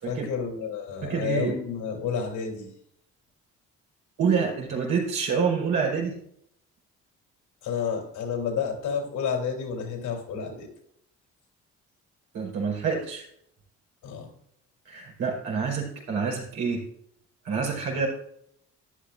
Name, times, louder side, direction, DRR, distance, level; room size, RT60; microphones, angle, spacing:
voice 1, 0.1-2.7 7.6-10.7 14.0-14.3, left 6 dB, 85° left, 2 dB, 3.5 m, -30 dB
voice 2, 1.0-1.6 4.2-6.2 12.3-13.2 14.9-16.8 17.4-18.1, right 5 dB, 85° right, -1 dB, 4.4 m, -27 dB
13.0 x 10.5 x 2.6 m, 0.68 s
cardioid pair, 90°, 30 cm